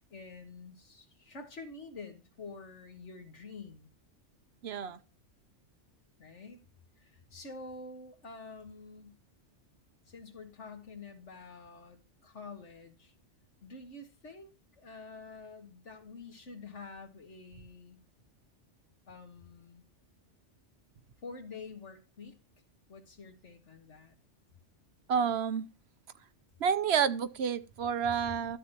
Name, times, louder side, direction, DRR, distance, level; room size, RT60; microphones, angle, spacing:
voice 1, 0.0-3.9 4.9-5.0 6.2-6.6 7.0-9.2 10.1-13.1 13.6-18.0 19.1-19.8 21.2-22.4 22.9-24.2, left 3 dB, 75° left, 2.1 m, -48 dB
voice 2, 4.6-5.0 25.1-25.7 26.6-28.6, right 7 dB, 65° right, 0.9 m, -29 dB
13.0 x 8.1 x 2.9 m
omnidirectional pair, 1.2 m